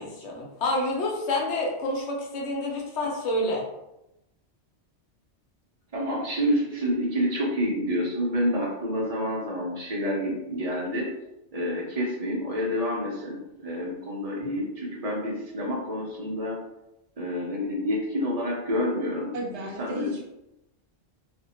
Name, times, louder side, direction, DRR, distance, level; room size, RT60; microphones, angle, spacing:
voice 1, 0.0-3.6, left 1 dB, 75° left, -1 dB, 1.0 m, -28 dB
voice 2, 5.9-11.1 11.5-16.6 17.2-19.3 19.8-20.1, equal, 40° right, -2 dB, 0.6 m, -28 dB
voice 3, 19.3-20.2, right 1 dB, 75° right, -1 dB, 1.0 m, -33 dB
2.5 x 2.1 x 2.8 m, 0.89 s
omnidirectional pair, 1.2 m